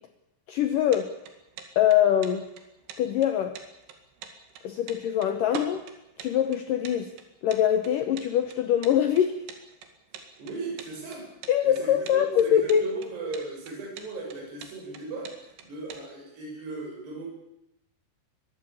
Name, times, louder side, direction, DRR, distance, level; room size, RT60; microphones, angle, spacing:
voice 1, 0.5-1.2 1.8-2.5 3.0-3.6 4.6-5.8 6.2-7.1 7.4-9.4 11.5-12.8, left 10 dB, 85° left, 8 dB, 1.9 m, -23 dB
sound 1, 0.7-16.0, right 7 dB, 85° right, 4.6 m, -44 dB
voice 2, 10.1-11.3 11.6-17.3, right 3 dB, 60° right, -1 dB, 8.4 m, -37 dB
22.5 x 15.5 x 8.6 m, 0.85 s
omnidirectional pair, 5.4 m